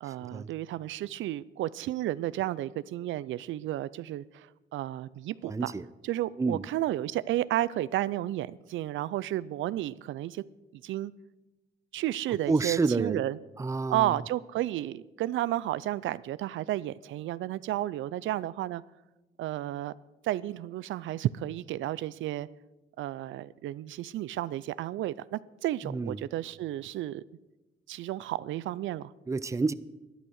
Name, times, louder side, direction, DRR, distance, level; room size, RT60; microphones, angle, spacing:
voice 1, 0.0-5.7 6.0-10.4 10.7-11.1 11.9-13.4 13.9-18.8 19.4-19.9 20.2-22.5 23.0-27.2 27.9-29.1, right 14 dB, 75° right, 0.4 m, -32 dB
voice 2, 5.4-5.8 6.4-6.6 12.5-13.2 13.6-14.1 25.8-26.2 29.3-29.7, right 3 dB, 15° right, 0.5 m, -29 dB
12.0 x 10.5 x 6.4 m
cardioid pair, 90°, 20 cm